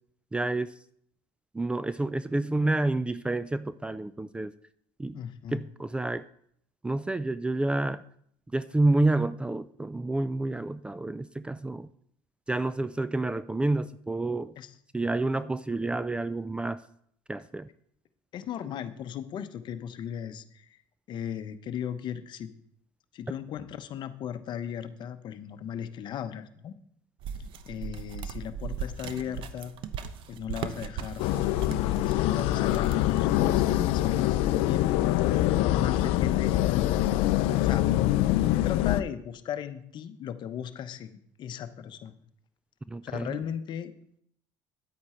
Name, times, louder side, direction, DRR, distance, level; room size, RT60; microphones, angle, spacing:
voice 1, 0.3-0.7 1.5-4.5 5.0-5.2 5.5-6.2 6.8-8.0 8.5-11.9 12.5-14.5 14.9-16.8 17.3-17.7 42.9-43.4, right 2 dB, 10° right, 15 dB, 0.4 m, -29 dB
voice 2, 5.1-5.6 14.6-14.7 18.3-20.8 21.1-22.5 23.1-26.7 27.7-29.7 30.3-31.2 31.8-35.4 35.7-36.9 37.6-37.8 38.6-42.1 43.0-43.9, left 9 dB, 50° left, 11 dB, 0.9 m, -37 dB
sound 1, 27.2-34.0, right 7 dB, 60° right, 0.8 m, -39 dB
sound 2, 31.2-39.0, left 14 dB, 75° left, 0.5 m, -24 dB
9.5 x 8.4 x 4.4 m, 0.68 s
supercardioid pair, 95°, 10 cm